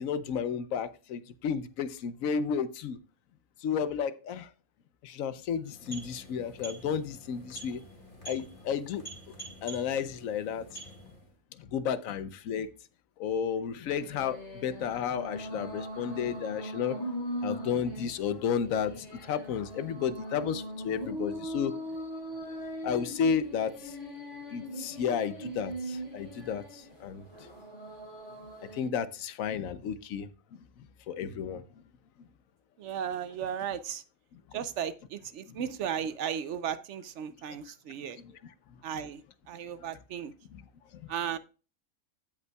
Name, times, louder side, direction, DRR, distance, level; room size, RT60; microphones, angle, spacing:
voice 1, 0.0-3.0 3.6-4.5 5.0-7.8 8.3-9.0 9.6-10.6 11.7-12.7 13.2-17.0 17.4-21.7 22.8-23.7 24.5-26.6 27.0-27.2 28.7-30.3 31.1-31.6, left 7 dB, 75° left, 14 dB, 1.0 m, -32 dB
sound 1, 5.6-11.4, right 2 dB, 40° left, 2.1 m, -47 dB
sound 2, 13.9-28.9, equal, 60° left, 3.5 m, -40 dB
voice 2, 32.8-34.0 34.5-38.2 38.8-39.2 39.5-40.3 41.1-41.4, right 8 dB, 65° right, 14 dB, 0.8 m, -35 dB
16.0 x 5.4 x 2.2 m, 0.34 s
omnidirectional pair, 1.4 m